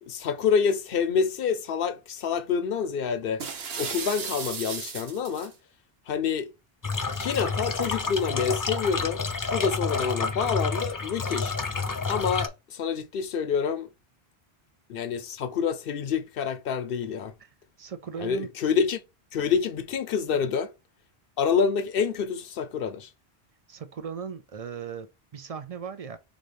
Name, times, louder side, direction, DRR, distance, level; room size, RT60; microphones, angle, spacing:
voice 1, 0.0-3.4 3.8-5.5 6.1-6.5 7.2-9.2 9.5-11.6 12.1-13.9 14.9-17.3 18.2-19.0 19.3-20.7 21.4-23.1, left 6 dB, 65° left, 0.8 m, -27 dB
sound 1, 3.4-5.5, right 5 dB, 75° right, 1.1 m, -35 dB
sound 2, 6.8-12.5, left 4 dB, 35° left, 0.3 m, -29 dB
voice 2, 17.8-18.5 20.3-20.4 23.7-26.2, right 7 dB, 50° right, 0.5 m, -37 dB
4.0 x 3.7 x 3.4 m
omnidirectional pair, 1.1 m